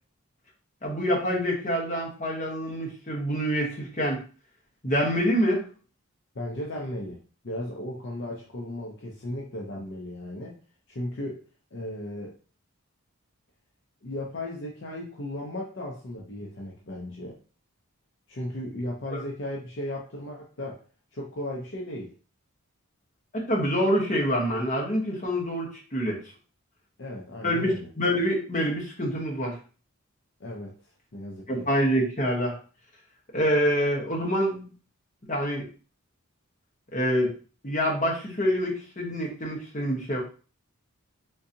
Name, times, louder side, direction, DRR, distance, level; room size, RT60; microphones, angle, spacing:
voice 1, 0.8-4.2 4.8-5.7 19.1-19.2 23.3-26.2 27.4-29.6 31.5-32.6 33.3-34.6 35.3-35.6 36.9-37.3 37.6-40.2, equal, 35° left, -2 dB, 0.9 m, -26 dB
voice 2, 6.3-7.2 7.4-10.6 10.9-11.4 11.7-12.3 14.0-17.4 18.3-20.8 21.1-22.1 27.0-27.9 30.4-30.7 31.1-31.7, left 1 dB, 55° left, -2 dB, 0.6 m, -35 dB
3.8 x 2.7 x 2.6 m, 0.37 s
head